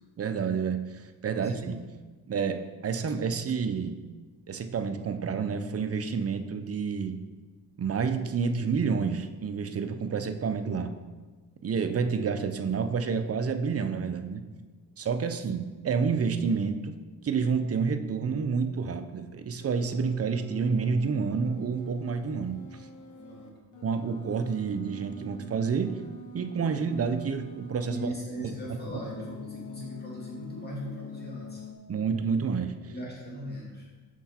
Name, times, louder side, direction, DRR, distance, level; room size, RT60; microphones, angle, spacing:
voice 1, 0.2-1.9 2.3-4.1 4.5-7.2 7.8-11.0 11.6-14.5 15.0-17.0 17.2-22.8 23.8-26.0 26.3-28.1 31.9-32.8, right 5 dB, 40° right, 8 dB, 0.6 m, -29 dB
voice 2, 1.3-1.7 23.2-23.5 27.9-31.6 32.8-33.9, right 1 dB, 25° left, -5 dB, 2.3 m, -38 dB
sound 1, 19.6-28.1 28.4-31.7, left 1 dB, 50° left, 0.9 m, -46 dB
6.0 x 5.5 x 4.3 m, 1.3 s
cardioid pair, 90°, 39 cm